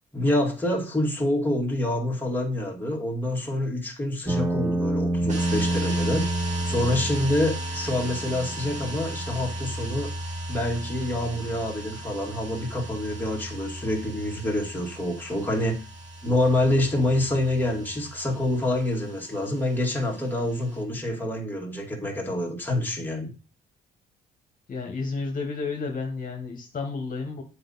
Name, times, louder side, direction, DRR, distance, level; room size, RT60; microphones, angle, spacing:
voice 1, 0.1-6.3 6.7-10.1 10.5-15.9 16.2-23.3, left 1 dB, 10° left, -1 dB, 2.2 m, -27 dB
sound 1, 4.3-18.3, right 1 dB, 10° right, 0.7 m, -32 dB
sound 2, 5.3-20.8, right 2 dB, 35° right, 2.4 m, -40 dB
voice 2, 24.7-27.4, left 4 dB, 45° left, 2 dB, 1.6 m, -31 dB
7.7 x 5.0 x 4.2 m, 0.34 s
cardioid pair, 90°, 20 cm